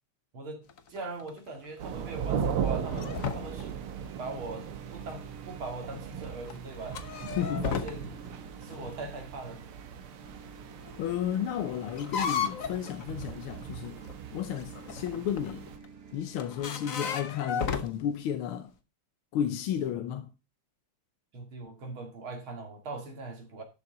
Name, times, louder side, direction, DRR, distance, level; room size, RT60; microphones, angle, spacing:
sound 1, 0.7-3.9 4.4-4.5 5.0-5.2 5.9-8.2 8.6-9.4 10.3-10.4 10.5-14.1 14.6-15.9 16.2-17.9, left 6 dB, 50° left, 1.2 m, -35 dB
voice 1, 0.9-3.8 4.2-7.0 7.4-8.1 8.6-9.6 21.3-23.6, right 3 dB, 70° right, 3.2 m, -41 dB
sound 2, 1.8-15.8, right 7 dB, 90° right, 1.9 m, -38 dB
sound 3, 3.4-17.0, right 6 dB, 55° right, 1.2 m, -50 dB
voice 2, 7.4-7.7 11.0-14.0 14.3-15.7 16.1-18.7 19.3-20.3, left 9 dB, 80° left, 1.7 m, -33 dB
11.5 x 7.1 x 3.9 m
omnidirectional pair, 2.3 m